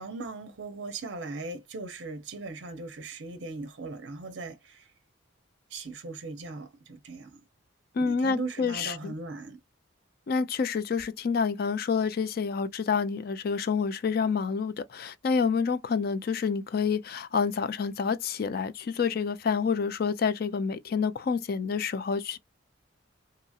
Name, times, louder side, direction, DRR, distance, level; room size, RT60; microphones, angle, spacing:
voice 1, 0.0-4.9 5.7-7.3 8.0-9.6, right 3 dB, 60° right, 0.6 m, -39 dB
voice 2, 8.0-9.1 10.3-22.4, left 5 dB, 45° left, 0.3 m, -28 dB
2.8 x 2.7 x 2.3 m
head